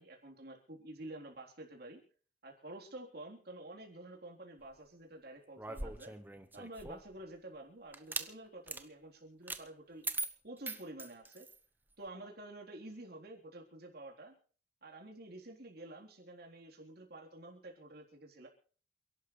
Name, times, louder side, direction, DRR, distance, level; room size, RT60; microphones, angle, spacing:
voice 1, 0.0-2.0 2.4-6.1 6.5-10.1 10.4-11.5 12.0-14.4 14.8-18.5, right 1 dB, 60° right, 1 dB, 3.7 m, -50 dB
sound 1, 5.6-7.1 7.9-8.3 8.7-8.8 9.5-9.6 10.0-11.6, right 3 dB, 10° right, 1.0 m, -41 dB
28.5 x 11.5 x 3.3 m, 0.42 s
head